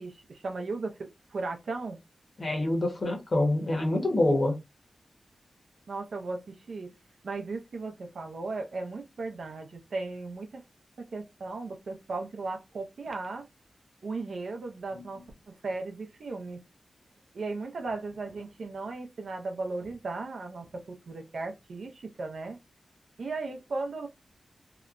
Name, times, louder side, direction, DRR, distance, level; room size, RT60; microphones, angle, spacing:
voice 1, 0.0-2.0 5.9-6.9 7.2-10.6 11.1-13.4 14.0-16.6 17.3-22.6 23.2-24.1, right 3 dB, 65° right, 0.5 m, -36 dB
voice 2, 2.4-4.5, left 1 dB, 40° left, 1.0 m, -26 dB
2.8 x 2.1 x 2.5 m
wide cardioid pair, 160°, 0 cm